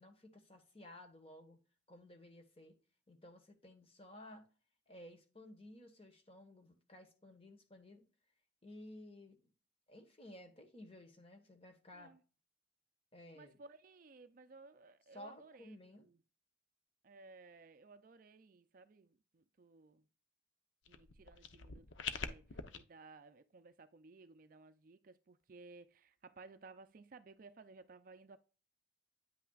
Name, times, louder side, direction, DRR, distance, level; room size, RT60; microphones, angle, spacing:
voice 1, 0.0-1.6 1.9-2.8 3.1-4.4 4.9-8.0 8.6-9.5 9.9-12.1 13.1-13.6 15.1-16.1, left 1 dB, 30° left, 1.3 m, -55 dB
voice 2, 13.3-16.2 17.0-20.0 20.9-28.4, right 3 dB, 45° right, 0.4 m, -58 dB
sound 1, 20.9-22.8, left 6 dB, 75° left, 0.7 m, -44 dB
9.3 x 5.8 x 2.4 m
head